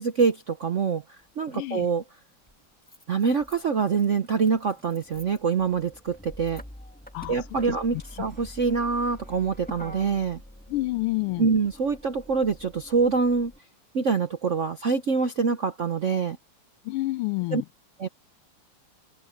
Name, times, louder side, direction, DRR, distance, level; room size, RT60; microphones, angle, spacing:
voice 1, 0.0-2.0 3.1-6.6 7.3-10.4 11.4-13.5 13.9-16.4 17.5-17.6 18.0-18.1, right 5 dB, 60° right, 0.7 m, -25 dB
Motor vehicle (road), 1.2-1.3 2.5-13.6, left 1 dB, 5° left, 1.0 m, -46 dB
voice 2, 1.5-1.9 7.1-7.4 8.2-8.3 10.7-11.5 16.8-17.6, left 19 dB, 85° left, 1.5 m, -28 dB
open air
omnidirectional pair, 2.4 m